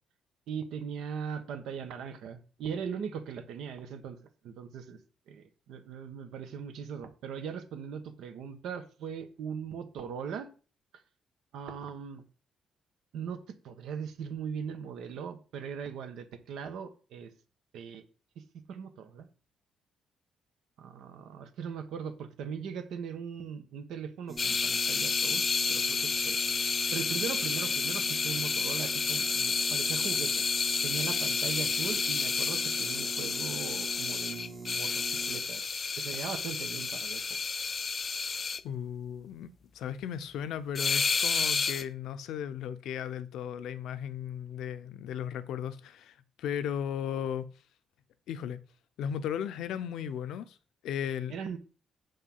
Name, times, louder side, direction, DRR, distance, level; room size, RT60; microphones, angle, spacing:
voice 1, 0.5-4.2 4.4-5.0 5.3-10.5 11.5-12.2 13.1-17.3 17.7-18.0 18.3-18.4 18.7-19.3 20.8-30.4 30.8-35.6 36.0-37.2 51.3-51.6, right 7 dB, 80° right, 1.4 m, -39 dB
sound 1, 24.3-35.4, right 3 dB, 25° right, 0.9 m, -44 dB
sound 2, 24.4-38.6 40.8-41.8, left 5 dB, 35° left, 0.4 m, -30 dB
voice 2, 38.6-47.5 48.3-48.6 49.0-50.6 50.8-51.6, left 9 dB, 85° left, 0.7 m, -36 dB
7.4 x 5.5 x 5.6 m
cardioid pair, 90°, 0 cm